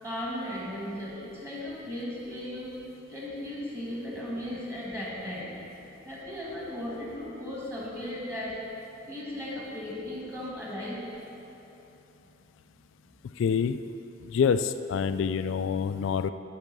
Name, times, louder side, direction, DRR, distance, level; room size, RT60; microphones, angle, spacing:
voice 1, 0.0-2.7 3.1-8.6 9.0-11.0, left 1 dB, 15° right, -5 dB, 1.9 m, -36 dB
voice 2, 13.4-13.8 14.2-16.3, left 6 dB, 70° left, 12 dB, 0.3 m, -26 dB
12.0 x 4.9 x 6.1 m, 2.9 s
head